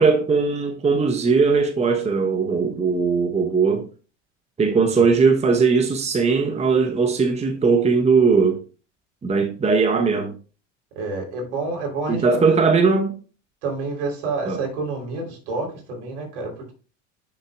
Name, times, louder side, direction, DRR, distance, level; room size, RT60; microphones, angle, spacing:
voice 1, 0.0-3.9 4.6-8.6 9.2-10.3 12.1-13.1 14.5-14.6, right 5 dB, 15° right, 1.0 m, -19 dB
voice 2, 11.0-12.6 13.6-16.7, right 3 dB, 70° right, 3.8 m, -29 dB
9.8 x 6.6 x 2.4 m
hypercardioid pair, 80°, 37 cm